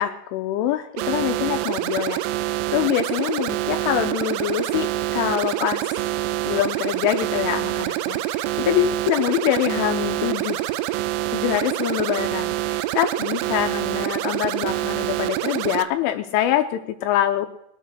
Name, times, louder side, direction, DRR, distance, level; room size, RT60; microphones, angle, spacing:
voice 1, 0.0-2.3 2.7-6.0 6.5-10.7 11.3-17.5, left 12 dB, 80° left, 7 dB, 3.0 m, -24 dB
sound 1, 1.0-15.8, right 15 dB, 85° right, 3.4 m, -26 dB
20.5 x 8.0 x 6.2 m, 0.84 s
omnidirectional pair, 5.9 m